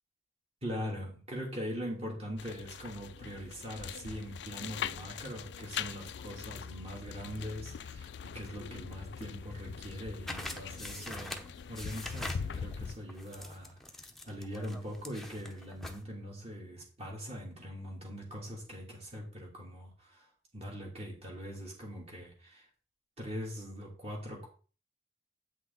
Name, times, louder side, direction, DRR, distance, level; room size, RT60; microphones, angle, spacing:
voice 1, 0.6-13.8 14.3-20.3 20.5-22.6 23.2-24.5, equal, 35° right, -1 dB, 3.1 m, -42 dB
sound 1, 2.4-12.9, left 7 dB, 65° left, 0.4 m, -42 dB
sound 2, 10.3-16.0, left 1 dB, ahead, 0.9 m, -44 dB
8.5 x 6.2 x 4.1 m, 0.37 s
head